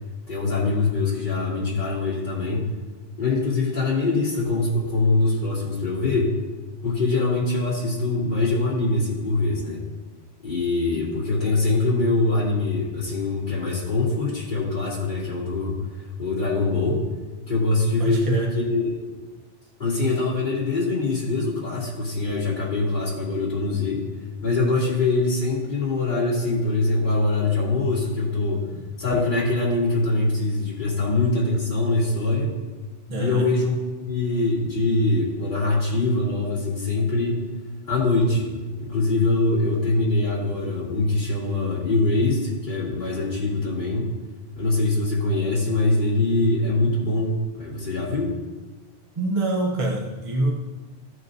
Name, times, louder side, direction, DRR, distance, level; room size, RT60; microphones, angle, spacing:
voice 1, 0.3-2.7 3.2-6.3 6.8-9.8 10.4-17.0 17.5-19.1 19.8-24.0 24.4-28.6 29.0-32.5 33.2-33.8 34.1-37.4 37.9-38.5 38.8-44.1 44.5-48.3, left 2 dB, 40° left, -8 dB, 2.9 m, -23 dB
voice 2, 18.0-18.5 28.7-28.8 33.1-33.5 49.2-50.5, right 2 dB, 35° right, -1 dB, 0.7 m, -25 dB
14.0 x 8.2 x 2.6 m, 1.2 s
omnidirectional pair, 1.2 m